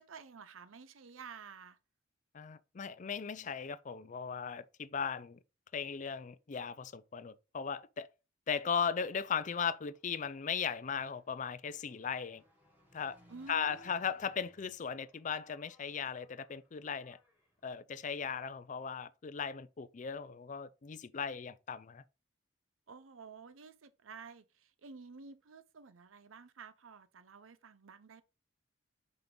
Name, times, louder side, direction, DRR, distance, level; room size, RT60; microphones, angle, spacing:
voice 1, 0.0-1.8 13.3-13.9 22.9-28.2, right 5 dB, 90° right, 0.7 m, -52 dB
voice 2, 2.3-5.4 5.7-8.1 8.5-12.4 12.9-13.2 13.5-17.2 17.6-22.0, left 6 dB, 40° left, 0.4 m, -37 dB
Engine, 9.7-17.7, equal, 10° right, 2.6 m, -67 dB
5.8 x 5.2 x 3.8 m
head